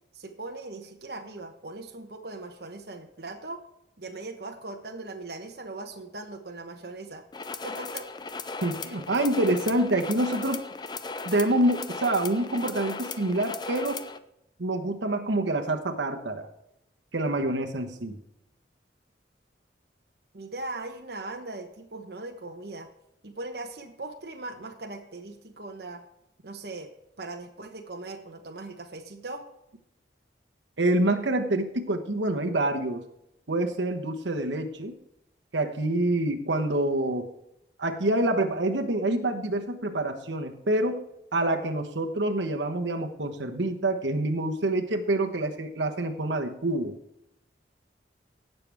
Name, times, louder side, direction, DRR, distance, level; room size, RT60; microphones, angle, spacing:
voice 1, 0.1-3.6 4.0-7.2 7.6-8.1 20.3-22.9 23.2-26.0 26.4-26.9 27.2-29.4, right 2 dB, 60° right, 4 dB, 1.1 m, -39 dB
sound 1, 7.3-14.2, left 4 dB, 25° left, 0.5 m, -37 dB
voice 2, 8.6-10.6 11.2-14.0 14.6-16.5 17.1-18.2 30.8-33.0 33.5-34.9 35.5-37.3 37.8-41.0 41.3-46.9, right 1 dB, 90° right, 4 dB, 1.2 m, -26 dB
17.0 x 6.9 x 3.5 m, 0.82 s
head